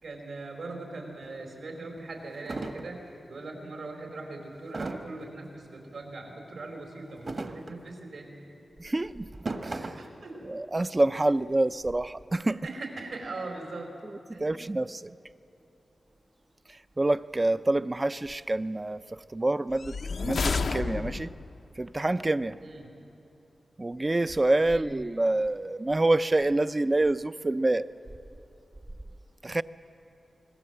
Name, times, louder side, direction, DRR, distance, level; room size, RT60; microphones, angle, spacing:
voice 1, 0.0-3.0 3.3-8.3 10.0-10.3 11.3-11.4 12.4-13.9 14.3-14.5 22.6-22.9 24.6-24.9, right 2 dB, 80° right, 4.6 m, -40 dB
sound 1, 1.2-1.3 2.0-2.1 2.5-2.9 4.7-5.3 7.1-7.9 9.2-10.1, right 2 dB, 45° right, 1.3 m, -36 dB
voice 2, 8.8-9.3 9.6-9.9 10.5-12.6 14.4-15.2 17.0-21.3 21.8-22.6 23.8-27.9 29.4-29.6, right 2 dB, 20° right, 0.4 m, -27 dB
sound 2, 19.7-21.5, left 4 dB, 65° left, 0.7 m, -30 dB
26.5 x 21.0 x 7.7 m
wide cardioid pair, 150°, 0 cm